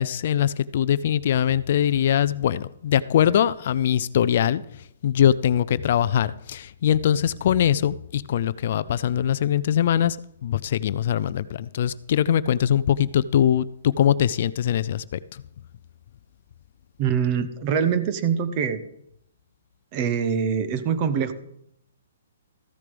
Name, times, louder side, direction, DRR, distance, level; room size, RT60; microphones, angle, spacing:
voice 1, 0.0-10.2 10.4-15.4, left 10 dB, 45° left, 0.3 m, -22 dB
voice 2, 17.0-18.8 19.9-21.3, right 7 dB, 25° right, 0.8 m, -24 dB
14.0 x 6.7 x 5.1 m
hypercardioid pair, 165°, 0 cm